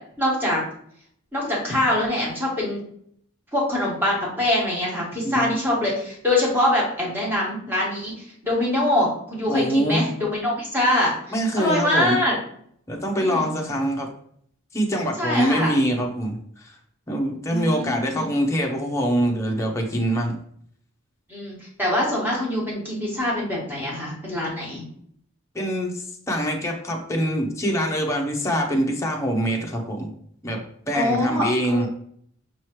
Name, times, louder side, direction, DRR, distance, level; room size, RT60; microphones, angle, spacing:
voice 1, 0.2-0.6 1.3-2.8 3.5-11.1 11.6-12.3 13.2-13.5 15.2-15.7 17.5-18.3 21.3-24.8 30.9-31.9, left 1 dB, 10° right, -4 dB, 1.5 m, -24 dB
voice 2, 5.2-5.5 9.5-10.1 11.3-12.2 12.9-14.1 14.7-16.8 17.1-20.4 25.5-30.1 30.4-30.6 30.9-31.9, equal, 15° left, 0 dB, 0.7 m, -24 dB
5.6 x 3.0 x 3.0 m, 0.66 s
head